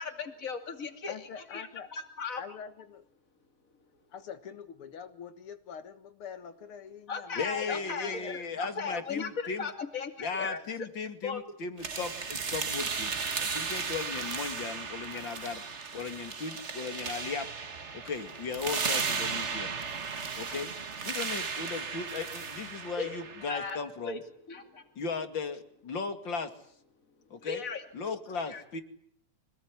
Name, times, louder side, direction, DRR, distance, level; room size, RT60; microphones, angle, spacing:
voice 1, 0.0-2.4 7.1-10.9 11.2-11.4 23.0-23.1 23.5-24.2 24.5-24.8 27.3-27.8 28.5-28.6, left 5 dB, 40° left, 7 dB, 3.1 m, -37 dB
voice 2, 1.1-1.9 2.4-3.0 4.1-9.3 10.4-10.5, left 7 dB, 85° left, 10 dB, 2.5 m, -45 dB
voice 3, 7.4-9.7 10.2-15.6 15.9-17.5 17.9-19.7 20.4-20.7 21.0-24.2 25.0-26.5 27.3-27.6 27.9-28.8, left 5 dB, 60° left, 9 dB, 3.1 m, -36 dB
sound 1, 11.8-23.8, right 5 dB, 35° right, 1.7 m, -35 dB
26.0 x 20.0 x 9.8 m, 0.67 s
omnidirectional pair, 2.3 m